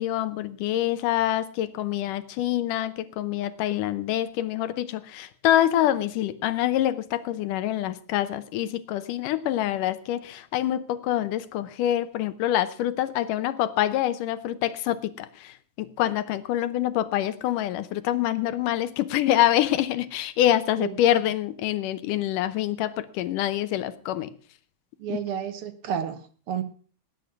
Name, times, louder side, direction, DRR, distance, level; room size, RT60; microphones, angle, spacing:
voice 1, 0.0-24.3 25.1-25.2, left 12 dB, 75° left, 14 dB, 2.3 m, -26 dB
voice 2, 25.0-26.6, right 9 dB, 65° right, 10 dB, 1.4 m, -31 dB
18.5 x 9.6 x 5.9 m, 0.42 s
omnidirectional pair, 4.0 m